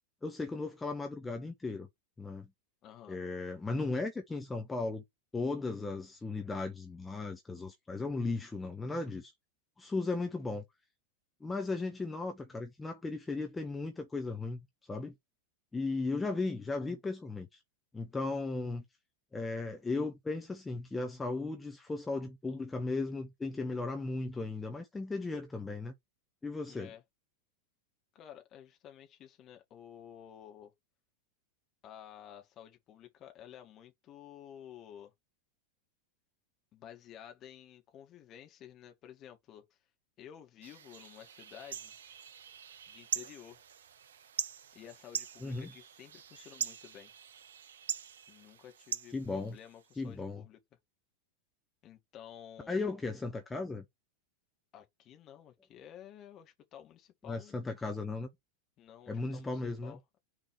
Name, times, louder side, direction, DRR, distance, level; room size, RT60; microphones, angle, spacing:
voice 1, 0.2-1.9 2.2-2.5 3.1-5.0 5.3-9.3 9.8-10.6 11.4-15.1 15.7-17.6 17.9-18.8 19.3-25.9 26.4-26.9 45.4-45.7 49.1-49.6 50.0-50.4 52.7-53.8 57.2-58.3 59.1-60.0, left 3 dB, 10° left, 1.2 m, -36 dB
voice 2, 2.8-3.2 26.7-27.0 28.1-30.7 31.8-35.1 36.7-39.6 40.2-41.9 42.9-43.6 44.7-47.1 48.3-50.6 51.8-52.8 54.7-57.6 58.8-60.2, left 10 dB, 35° left, 2.1 m, -52 dB
sound 1, 40.6-50.0, right 8 dB, 65° right, 0.5 m, -42 dB
6.4 x 3.8 x 5.7 m
figure-of-eight pair, 90°, 0 cm